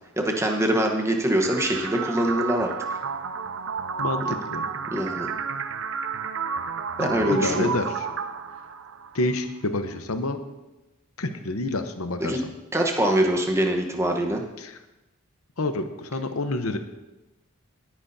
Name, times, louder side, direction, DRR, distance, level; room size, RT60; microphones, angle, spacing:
voice 1, 0.2-2.7 4.2-4.3 4.9-5.3 7.0-7.7 12.2-12.4 12.7-14.4, right 1 dB, 10° right, 1 dB, 1.1 m, -23 dB
sound 1, 1.4-9.4, right 6 dB, 65° right, 0.4 m, -31 dB
voice 2, 4.0-4.7 7.0-8.1 9.1-10.4 11.2-12.5 14.6-14.7 15.6-16.8, left 2 dB, 80° left, 8 dB, 0.9 m, -28 dB
18.0 x 9.6 x 2.8 m, 1.0 s
head